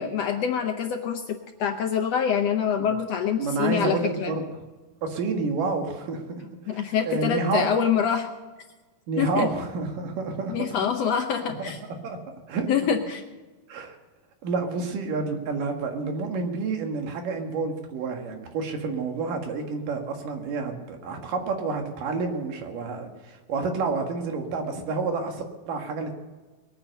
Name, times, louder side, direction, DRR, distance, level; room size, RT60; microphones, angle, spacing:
voice 1, 0.0-4.4 6.7-8.3 9.2-9.5 10.5-11.8 12.7-13.2, left 7 dB, 70° left, 5 dB, 1.6 m, -25 dB
voice 2, 3.4-4.4 5.0-6.2 6.7-7.7 9.1-10.5 12.0-12.2 12.5-12.7 13.7-13.9 14.4-26.1, right 4 dB, 85° right, 4 dB, 3.4 m, -29 dB
21.0 x 9.4 x 6.7 m, 1.2 s
omnidirectional pair, 3.7 m